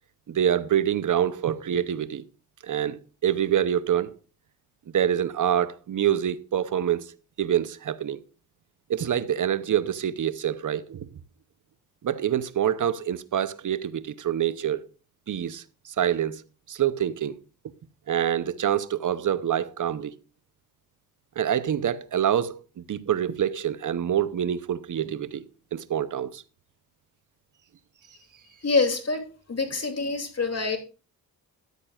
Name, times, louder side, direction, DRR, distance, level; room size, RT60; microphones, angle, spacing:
voice 1, 0.3-2.2 2.6-4.1 4.9-8.2 8.9-11.1 12.0-14.9 15.3-16.4 16.7-17.3 18.1-20.1 21.4-25.4 25.7-26.4, right 10 dB, 50° right, 0.7 m, -26 dB
voice 2, 28.6-30.8, left 4 dB, 40° left, 2.7 m, -26 dB
13.5 x 9.9 x 2.4 m
cardioid pair, 65°, 39 cm